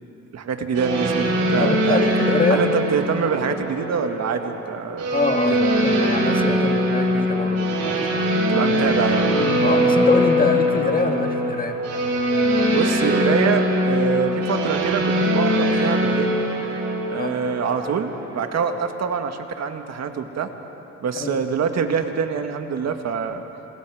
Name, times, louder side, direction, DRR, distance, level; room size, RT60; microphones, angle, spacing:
voice 1, 0.3-2.0 2.5-5.1 5.5-5.7 8.5-9.3 12.7-16.4 17.1-20.5 21.0-23.4, right 6 dB, 60° right, 6 dB, 1.8 m, -25 dB
sound 1, 0.7-18.8, equal, 90° right, 5.4 m, -22 dB
voice 2, 1.6-2.7 5.1-8.3 8.7-8.8 9.6-11.8 17.2-17.4 21.2-21.4, left 3 dB, 30° left, 5 dB, 1.8 m, -25 dB
27.5 x 27.5 x 4.9 m, 2.9 s
cardioid pair, 90°, 30 cm